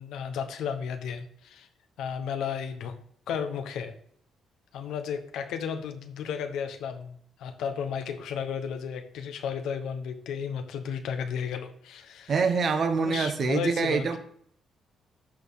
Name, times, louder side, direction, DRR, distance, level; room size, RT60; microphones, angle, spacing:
voice 1, 0.0-1.7 2.0-3.0 3.3-3.9 4.7-12.3 13.0-14.2, left 7 dB, 80° left, 7 dB, 0.9 m, -33 dB
voice 2, 12.3-14.2, right 5 dB, 50° right, 8 dB, 1.0 m, -25 dB
12.5 x 4.3 x 3.6 m, 0.63 s
cardioid pair, 90°, 0 cm